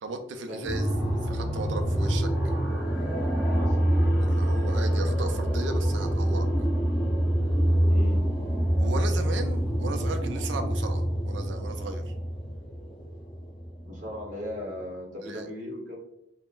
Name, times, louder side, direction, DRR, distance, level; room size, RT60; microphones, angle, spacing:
voice 1, 0.0-2.3 4.2-6.5 8.8-12.0 15.2-15.5, right 3 dB, 65° right, 6 dB, 0.4 m, -36 dB
sound 1, 0.6-14.3, equal, 5° right, 0.7 m, -26 dB
voice 2, 3.4-3.9 4.4-4.5 7.8-8.2 13.8-15.9, left 1 dB, 45° right, -4 dB, 0.9 m, -37 dB
3.6 x 2.0 x 2.4 m, 0.83 s
head